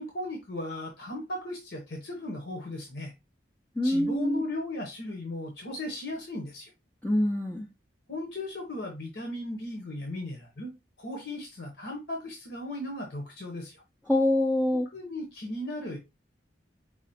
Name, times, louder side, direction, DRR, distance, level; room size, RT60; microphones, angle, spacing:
voice 1, 0.0-3.1 3.8-6.7 8.1-13.7 14.9-16.0, left 1 dB, 65° left, 1 dB, 1.1 m, -36 dB
voice 2, 3.8-4.4 7.0-7.7 14.1-14.9, left 1 dB, 10° left, -2 dB, 0.5 m, -25 dB
4.9 x 2.4 x 4.2 m, 0.23 s
head